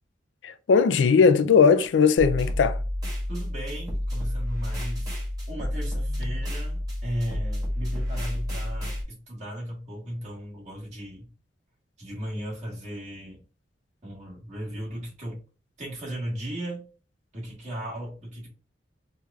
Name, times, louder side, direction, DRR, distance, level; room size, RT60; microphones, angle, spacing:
voice 1, 0.4-2.8, left 5 dB, 90° left, 0.4 m, -19 dB
sound 1, 2.2-9.0, left 1 dB, 20° right, 1.4 m, -30 dB
voice 2, 3.3-5.1 5.5-11.3 12.0-13.4 14.0-15.4 15.8-16.9 17.3-18.5, equal, 40° right, 1.5 m, -36 dB
4.4 x 2.6 x 2.3 m
head